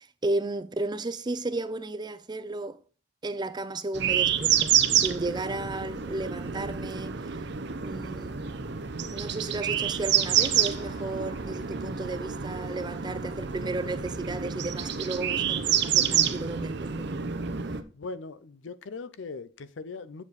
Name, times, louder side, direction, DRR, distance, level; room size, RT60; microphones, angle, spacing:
voice 1, 0.0-2.8 3.2-7.2 7.8-8.4 9.1-17.1, right 2 dB, 20° right, 0.5 m, -34 dB
sound 1, 3.9-17.8, right 9 dB, 60° right, 0.7 m, -28 dB
Car passing by, 4.7-16.2 16.5-16.8, left 2 dB, 55° left, 4.2 m, -56 dB
voice 2, 17.9-20.2, left 4 dB, 75° left, 0.6 m, -40 dB
7.2 x 6.7 x 4.0 m
head